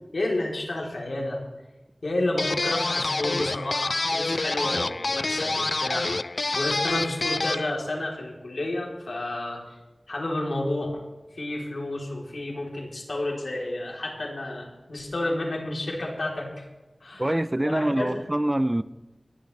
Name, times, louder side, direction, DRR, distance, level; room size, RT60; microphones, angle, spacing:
voice 1, 0.1-1.4 2.0-6.1 6.5-9.8 10.1-11.0 11.3-16.6 17.0-17.3 17.6-18.3, left 1 dB, 85° left, 3.6 m, -30 dB
sound 1, 2.4-7.7, left 2 dB, 70° left, 0.4 m, -27 dB
voice 2, 17.2-18.8, right 1 dB, 25° right, 0.6 m, -25 dB
24.0 x 11.0 x 3.4 m
wide cardioid pair, 45°, 0 cm